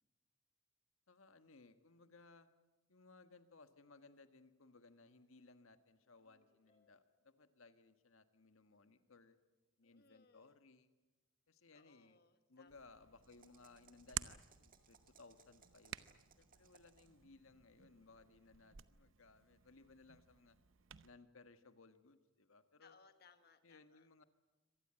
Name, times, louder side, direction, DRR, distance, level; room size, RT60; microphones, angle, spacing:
voice 1, 1.1-2.5 2.9-9.4 9.8-10.9 11.5-12.2 12.5-20.6 21.0-23.0 23.6-24.2, left 3 dB, 85° left, 9 dB, 1.6 m, -63 dB
Ringtone, 6.2-7.4, left 4 dB, 35° left, 4.8 m, -79 dB
voice 2, 9.8-10.6 11.7-12.9 22.8-24.1, left 4 dB, 50° left, 9 dB, 1.1 m, -68 dB
Hands, 12.7-21.1, right 10 dB, 75° right, 0.8 m, -53 dB
sound 1, 13.2-17.2, right 6 dB, 40° right, 2.0 m, -69 dB
25.0 x 19.0 x 8.9 m, 1.1 s
head